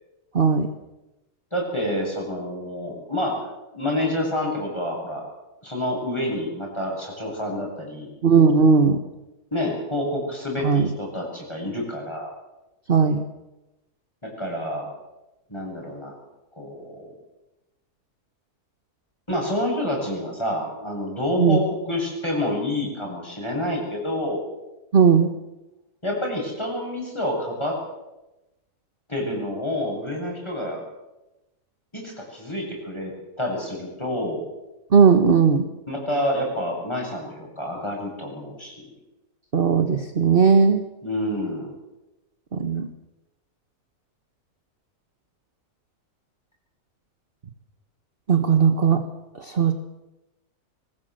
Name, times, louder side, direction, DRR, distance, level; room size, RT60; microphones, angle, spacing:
voice 1, 0.3-0.7 8.2-9.0 10.6-10.9 12.9-13.2 21.4-21.6 24.9-25.3 34.9-35.6 39.5-40.8 42.5-42.9 48.3-49.0 49.3-49.7, right 6 dB, 40° right, 6 dB, 1.4 m, -17 dB
voice 2, 1.5-3.4 3.7-5.2 5.6-8.1 9.5-12.3 14.2-14.9 15.5-16.2 16.6-17.1 19.3-24.4 26.0-27.8 29.1-30.8 31.9-33.1 33.4-34.4 35.9-38.7 41.0-41.7, left 1 dB, 15° left, 0 dB, 8.1 m, -28 dB
23.0 x 19.5 x 7.8 m, 0.99 s
omnidirectional pair, 1.7 m